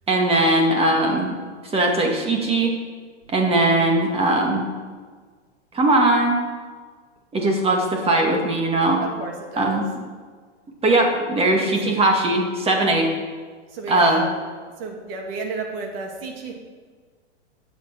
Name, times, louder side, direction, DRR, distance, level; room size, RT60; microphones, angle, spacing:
voice 1, 0.1-1.3 1.7-2.7 3.3-4.7 5.7-6.4 7.3-9.0 9.6-9.8 10.8-13.1 13.9-14.2, right 2 dB, 15° right, 1 dB, 2.1 m, -19 dB
voice 2, 9.0-9.9 11.6-11.7 13.7-14.2 14.8-16.5, right 4 dB, 55° right, 2 dB, 2.5 m, -32 dB
10.5 x 7.7 x 6.0 m, 1.5 s
hypercardioid pair, 125°, 35 cm